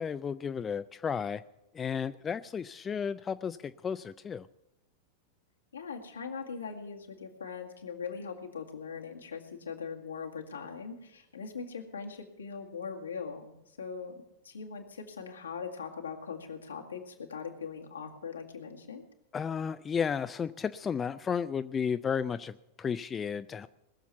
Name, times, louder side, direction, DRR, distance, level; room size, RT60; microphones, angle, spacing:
voice 1, 0.0-1.4 1.7-4.5 19.3-23.7, left 7 dB, 20° left, 12 dB, 0.4 m, -33 dB
voice 2, 5.7-14.1 14.4-19.0, left 5 dB, 75° left, 1 dB, 2.1 m, -41 dB
20.5 x 7.2 x 7.1 m, 0.90 s
figure-of-eight pair, 90°, 0 cm